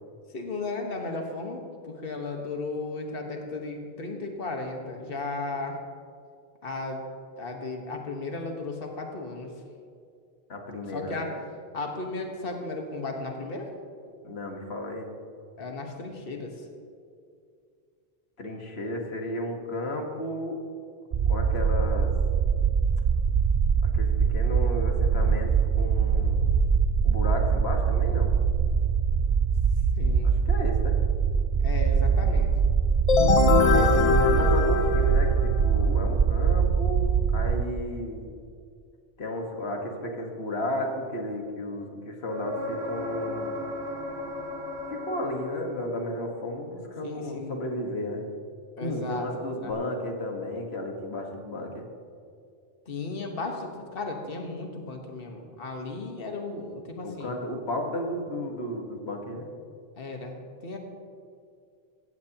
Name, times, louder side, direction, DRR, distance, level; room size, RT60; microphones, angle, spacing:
voice 1, 0.3-5.8 6.6-7.0 7.4-9.5 10.9-11.3 11.7-13.7 15.6-16.7 30.0-30.3 31.6-32.5 47.0-47.6 48.8-49.3 49.6-49.7 52.8-57.4 59.3-59.4 60.0-60.8, left 3 dB, 60° left, 2 dB, 1.6 m, -35 dB
voice 2, 10.5-11.3 14.2-15.1 18.4-20.6 21.3-22.1 23.8-25.5 25.8-26.5 27.0-28.3 30.2-31.0 33.7-38.3 39.2-43.6 44.9-48.3 48.8-51.9 57.0-59.5, left 1 dB, 80° left, 2 dB, 1.8 m, -33 dB
sound 1, 21.1-37.6, right 6 dB, 55° right, 0.4 m, -23 dB
sound 2, 33.1-35.8, left 5 dB, 40° left, 0.6 m, -22 dB
sound 3, 42.3-46.0 49.7-49.8, left 1 dB, 80° right, 2.5 m, -35 dB
16.0 x 15.0 x 2.9 m, 2.3 s
omnidirectional pair, 1.1 m